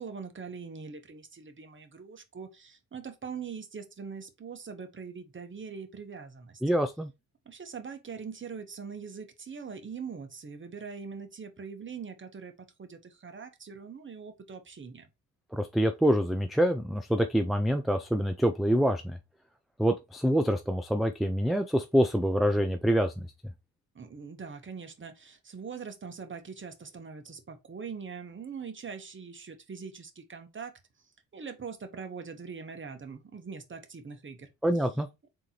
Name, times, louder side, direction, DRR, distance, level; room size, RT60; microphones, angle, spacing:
voice 1, 0.0-6.6 7.4-15.1 23.9-30.7 31.3-34.5, right 5 dB, 30° right, 1.1 m, -42 dB
voice 2, 6.6-7.1 15.5-19.2 19.8-23.3 34.6-35.1, equal, ahead, 0.4 m, -26 dB
3.7 x 2.9 x 4.2 m
supercardioid pair, 75°, 41 cm